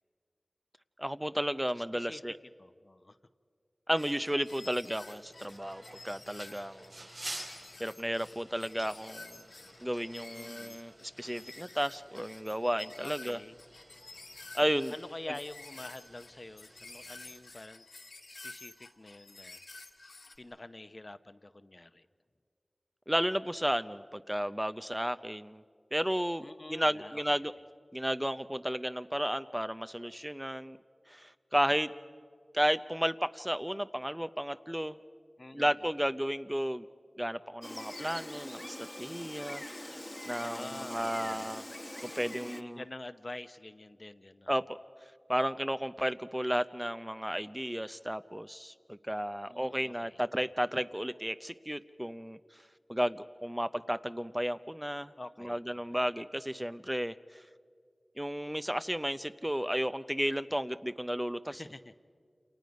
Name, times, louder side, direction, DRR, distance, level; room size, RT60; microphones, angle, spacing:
voice 1, 1.0-2.4 3.9-7.0 7.4-7.5 7.8-9.4 9.8-13.4 14.5-14.9 23.1-25.6 25.9-27.5 27.9-30.8 31.1-31.9 32.5-35.0 35.5-36.9 37.2-41.6 42.0-42.8 44.5-44.8 45.3-52.4 52.9-55.1 55.4-57.4 58.2-61.6, equal, 10° right, 12 dB, 0.5 m, -33 dB
voice 2, 1.7-2.2 2.6-3.2 10.3-10.8 13.0-13.6 14.9-19.6 19.9-22.1 26.4-27.5 35.4-35.7 40.4-41.5 42.4-44.5 49.5-50.2 55.2-56.0 61.5-61.9, left 2 dB, 45° left, 11 dB, 0.8 m, -47 dB
sound 1, 3.9-20.4, left 3 dB, 85° left, 2.1 m, -51 dB
sound 2, 4.9-17.4, right 1 dB, 80° right, 4.3 m, -51 dB
Gull seagull, 37.6-42.6, left 1 dB, 25° left, 1.2 m, -43 dB
28.5 x 28.5 x 5.3 m, 2.1 s
wide cardioid pair, 40°, 0 cm